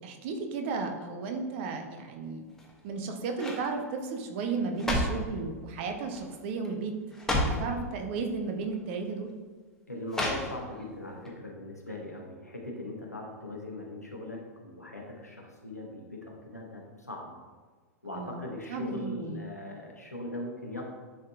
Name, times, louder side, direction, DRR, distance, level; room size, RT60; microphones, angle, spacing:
voice 1, 0.0-2.5 2.8-7.0 7.4-9.3 18.1-18.4 18.7-19.4, right 4 dB, 45° right, 5 dB, 0.8 m, -34 dB
sound 1, 2.5-2.9 3.3-3.7 4.5-5.3 6.1-6.4 6.6-6.7 7.1-7.7 8.6-8.7 10.1-10.8 11.2-11.3, left 1 dB, 5° left, 1.0 m, -31 dB
voice 2, 9.9-17.3 18.0-20.8, left 1 dB, 90° left, -1 dB, 1.2 m, -40 dB
10.0 x 3.8 x 2.4 m, 1.4 s
figure-of-eight pair, 95°, 8 cm